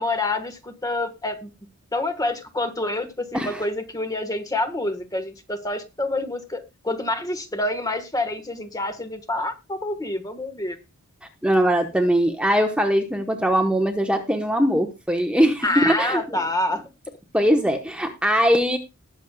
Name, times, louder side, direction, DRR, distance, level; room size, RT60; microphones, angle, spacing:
voice 1, 0.0-1.5 1.9-10.8 15.6-16.8, left 2 dB, 15° left, 9 dB, 1.4 m, -27 dB
voice 2, 11.4-16.4 17.3-18.8, equal, 5° right, 4 dB, 1.0 m, -21 dB
19.5 x 7.2 x 2.3 m, 0.26 s
head